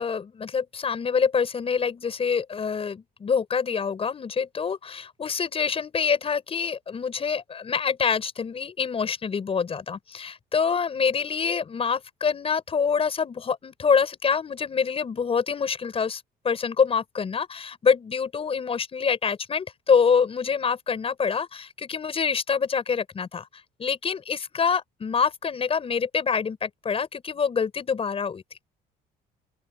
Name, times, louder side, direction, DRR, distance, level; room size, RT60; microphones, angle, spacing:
voice 1, 0.0-23.5 23.8-28.4, left 6 dB, 35° left, 5.5 m, -26 dB
open air
cardioid pair, 110°, 17 cm